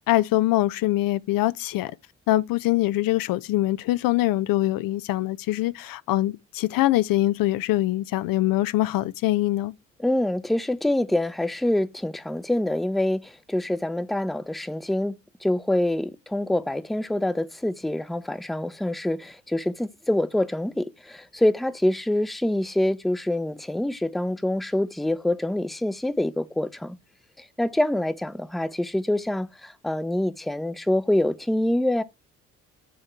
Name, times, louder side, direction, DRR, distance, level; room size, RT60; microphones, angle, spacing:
voice 1, 0.1-1.9 2.3-9.7, left 16 dB, 60° left, 0.5 m, -23 dB
voice 2, 10.0-27.0 27.4-32.0, left 1 dB, ahead, 0.6 m, -26 dB
6.9 x 3.7 x 4.4 m
hypercardioid pair, 50°, 39 cm